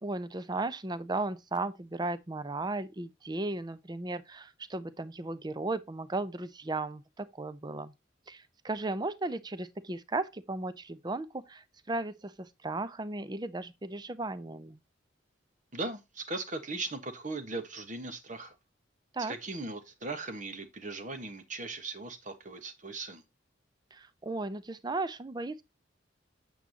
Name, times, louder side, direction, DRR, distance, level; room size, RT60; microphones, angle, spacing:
voice 1, 0.0-7.9 8.3-14.8 19.1-19.3 23.9-25.6, right 2 dB, 20° right, 0.6 m, -35 dB
voice 2, 15.7-18.5 19.2-23.2, right 3 dB, 40° right, 1.3 m, -38 dB
8.7 x 7.0 x 2.8 m
head